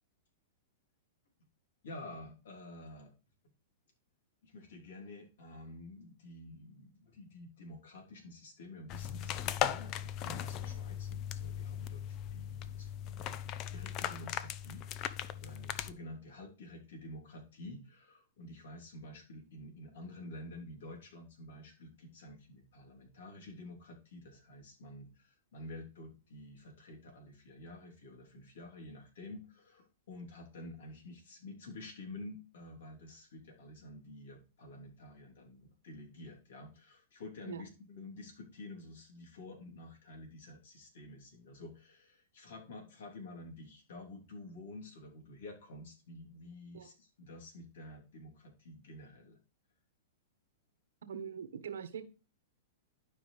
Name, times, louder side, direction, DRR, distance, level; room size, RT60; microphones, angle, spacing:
voice 1, 1.8-3.1 4.4-49.4, left 1 dB, 75° left, 1 dB, 3.2 m, -50 dB
sound 1, 8.9-15.9, left 10 dB, 40° left, 0.6 m, -38 dB
voice 2, 51.0-52.1, right 7 dB, 85° right, 11 dB, 1.2 m, -42 dB
11.5 x 5.0 x 3.3 m, 0.33 s
hypercardioid pair, 125°, 0 cm